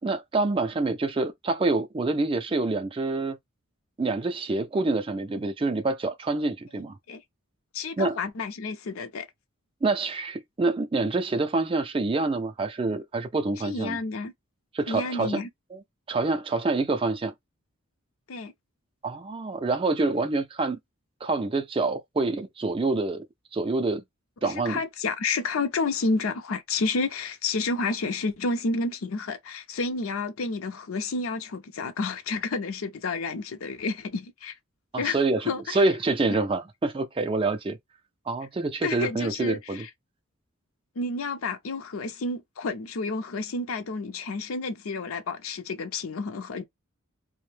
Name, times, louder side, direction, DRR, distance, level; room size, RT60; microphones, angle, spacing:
voice 1, 0.0-3.4 4.0-7.0 8.0-8.2 9.8-14.0 14.7-15.4 15.7-15.8 16.1-17.3 19.0-20.8 21.2-23.2 23.5-24.0 24.4-24.8 34.9-37.8 38.3-39.8, right 3 dB, 25° right, 0.3 m, -26 dB
voice 2, 7.7-9.3 13.6-14.3 14.9-15.5 18.3-18.5 24.4-34.5 35.0-35.2 35.5-35.9 38.8-39.9 41.0-46.7, left 3 dB, 75° left, 0.5 m, -30 dB
2.6 x 2.1 x 3.2 m
head